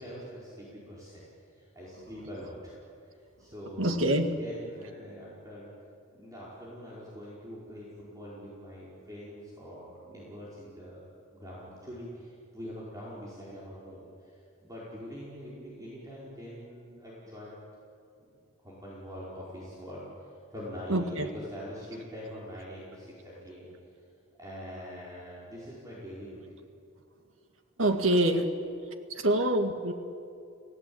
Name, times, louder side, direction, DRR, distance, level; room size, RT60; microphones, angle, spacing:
voice 1, 0.0-5.7 6.1-17.6 18.6-23.7 24.4-26.6, equal, 15° right, -7 dB, 4.9 m, -44 dB
voice 2, 3.8-4.3 20.9-21.3 27.8-28.5 29.1-29.9, right 1 dB, 75° right, 6 dB, 2.0 m, -25 dB
30.0 x 18.0 x 8.7 m, 2.5 s
head